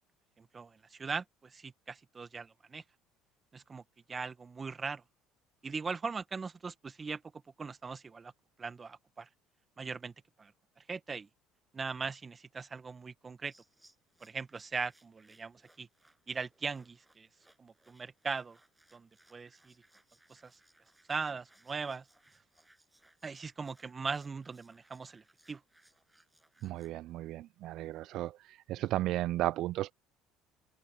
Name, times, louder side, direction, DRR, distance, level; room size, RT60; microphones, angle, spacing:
voice 1, 0.4-2.8 3.5-3.8 4.1-5.0 5.6-7.2 7.6-8.3 8.6-9.3 9.8-10.1 10.4-10.5 10.8-11.3 11.7-13.5 14.2-15.9 16.3-17.3 17.6-18.6 18.9-19.7 20.3-20.5 21.1-22.0 23.2-25.6, right 5 dB, 30° right, 1.7 m, -40 dB
sound 1, 13.4-27.0, right 1 dB, 10° right, 7.2 m, -67 dB
voice 2, 26.6-29.9, right 15 dB, 65° right, 0.5 m, -34 dB
hypercardioid pair, 70°, 0 cm